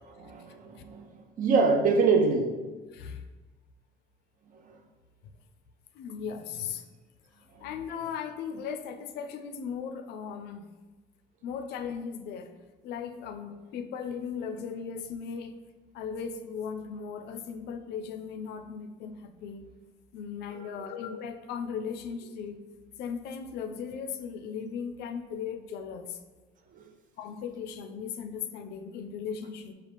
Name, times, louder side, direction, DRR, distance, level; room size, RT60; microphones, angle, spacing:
voice 1, 0.1-1.0 1.4-2.6 20.8-20.9 26.7-26.8, right 4 dB, 50° right, 4 dB, 0.6 m, -24 dB
voice 2, 2.9-3.2 5.9-6.8 7.6-10.7 11.4-12.5 12.8-15.6 15.9-19.6 20.1-22.6 23.0-26.2 27.2-29.7, left 6 dB, 80° left, 8 dB, 0.4 m, -37 dB
4.8 x 2.3 x 3.4 m, 1.3 s
cardioid pair, 110°, 17 cm